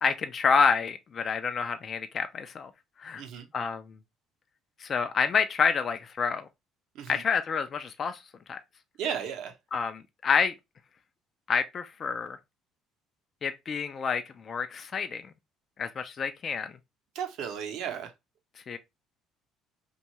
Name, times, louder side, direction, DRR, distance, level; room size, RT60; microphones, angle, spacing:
voice 1, 0.0-2.7 3.0-3.2 3.5-3.9 4.8-6.5 7.1-8.2 8.5-8.6 9.7-10.5 11.5-12.4 13.4-15.2 15.8-16.8 18.7-18.8, left 5 dB, 45° left, 0.3 m, -28 dB
voice 2, 9.0-9.5 17.1-18.1, right 8 dB, 70° right, 0.6 m, -34 dB
2.6 x 2.3 x 2.9 m
supercardioid pair, 85°, 0 cm